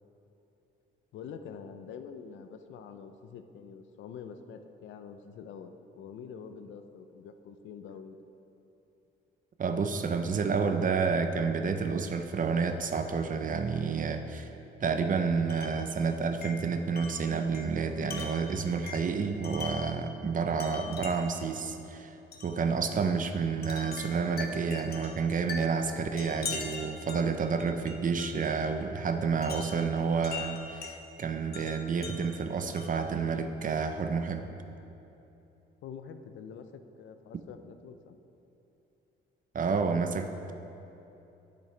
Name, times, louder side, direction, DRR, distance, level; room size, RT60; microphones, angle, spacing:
voice 1, 1.1-8.2 35.8-38.2, left 6 dB, 75° left, 8 dB, 0.6 m, -46 dB
voice 2, 9.6-14.5 14.8-22.1 22.4-34.4 39.5-40.5, right 5 dB, 40° right, 7 dB, 0.6 m, -30 dB
Wind chime, 15.5-15.9 16.4-20.0 20.6-21.4 22.3-22.6 23.6-28.6 29.4-31.0 31.5-33.1, left 4 dB, 50° left, 1.0 m, -42 dB
9.3 x 8.3 x 3.3 m, 2.9 s
cardioid pair, 90°, 20 cm